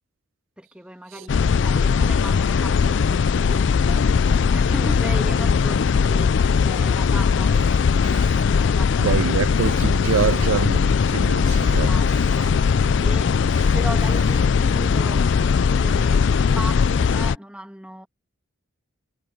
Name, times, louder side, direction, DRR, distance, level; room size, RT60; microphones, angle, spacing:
voice 1, 0.6-8.2 8.6-9.4 10.3-10.7 11.7-12.1 12.3-12.5 13.0-13.3 13.7-18.1, right 1 dB, 5° right, 1.8 m, -37 dB
sound 1, 1.3-17.4, left 6 dB, 60° left, 0.4 m, -19 dB
Electric guitar, 7.3-8.9 9.6-11.0 11.5-12.8 13.5-14.7, right 4 dB, 35° right, 1.8 m, -44 dB
voice 2, 9.0-11.9, right 7 dB, 75° right, 0.4 m, -25 dB
head